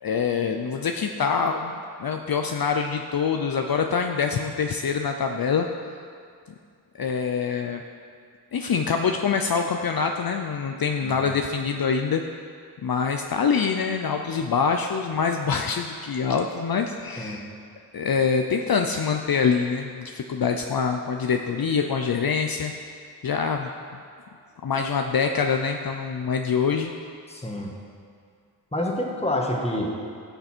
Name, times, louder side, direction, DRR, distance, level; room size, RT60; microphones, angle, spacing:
voice 1, 0.0-5.7 7.0-7.8 8.5-12.2 12.8-17.5 17.9-22.7 23.2-23.7 24.6-26.9, left 6 dB, 60° left, 4 dB, 0.6 m, -25 dB
voice 2, 11.0-11.3 17.2-17.4 27.3-27.7 28.7-29.9, left 1 dB, 15° left, -1 dB, 1.6 m, -28 dB
17.0 x 6.8 x 4.4 m, 2.2 s
wide cardioid pair, 110°, 41 cm